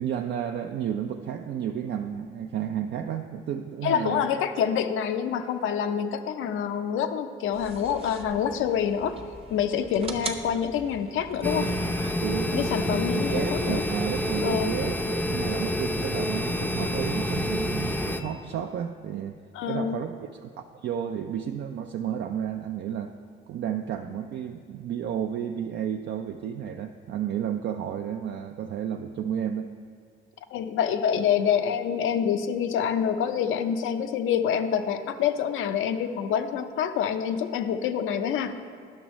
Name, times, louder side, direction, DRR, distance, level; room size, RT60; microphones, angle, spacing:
voice 1, 0.0-4.3 12.2-19.4 19.7-20.1 20.4-23.1 23.5-29.7, right 9 dB, 65° right, 5 dB, 0.4 m, -32 dB
voice 2, 3.8-9.2 9.5-11.7 12.5-13.8 14.4-14.7 19.5-20.0 30.5-38.5, left 8 dB, 85° left, 9 dB, 0.5 m, -26 dB
sound 1, 7.5-14.5, right 3 dB, 30° right, 0.7 m, -42 dB
sound 2, 11.4-18.2, left 1 dB, 10° left, 0.5 m, -28 dB
11.0 x 6.2 x 3.1 m, 2.1 s
cardioid pair, 90°, 20 cm